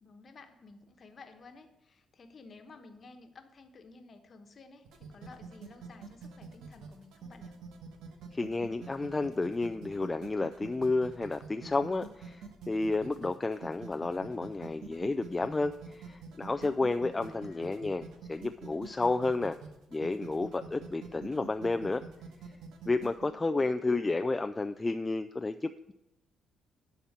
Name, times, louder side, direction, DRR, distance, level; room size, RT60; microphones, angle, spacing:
voice 1, 0.0-7.6 17.0-17.8 23.3-24.2, left 3 dB, 45° left, 7 dB, 1.1 m, -54 dB
sound 1, 4.8-23.3, right 6 dB, 85° right, 1.2 m, -47 dB
voice 2, 8.3-18.0 18.3-19.6 19.9-22.0 22.9-25.9, left 3 dB, 20° left, 8 dB, 0.3 m, -31 dB
11.0 x 4.2 x 7.2 m, 0.92 s
cardioid pair, 90°, 0 cm